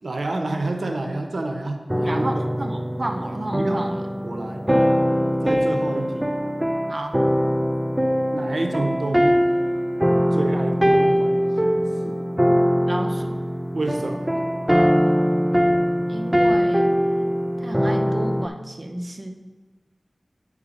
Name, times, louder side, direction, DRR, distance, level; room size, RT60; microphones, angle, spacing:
voice 1, 0.0-2.4 3.5-3.9 4.2-4.7 5.4-6.4 8.3-9.5 10.3-12.2 13.7-14.4, right 2 dB, 85° right, 4 dB, 0.7 m, -29 dB
sound 1, 1.9-18.5, equal, 15° right, 0.5 m, -22 dB
voice 2, 2.0-4.0 6.9-7.2 12.9-13.4 16.0-16.9 17.6-19.4, right 1 dB, 50° right, 3 dB, 0.7 m, -31 dB
8.4 x 4.8 x 5.0 m, 1.4 s
wide cardioid pair, 45°, 0 cm